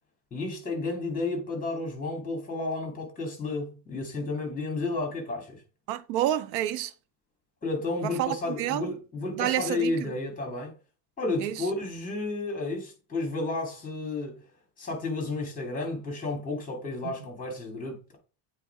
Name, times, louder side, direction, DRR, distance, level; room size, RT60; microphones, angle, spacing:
voice 1, 0.3-5.6 7.6-10.7 11.2-14.4 14.8-18.2, left 2 dB, 15° left, 2.4 m, -32 dB
voice 2, 5.9-6.9 8.0-8.9 9.3-9.9 11.4-11.6 17.0-17.1, right 13 dB, 90° right, 0.7 m, -29 dB
8.0 x 3.3 x 4.7 m
cardioid pair, 165°, 49 cm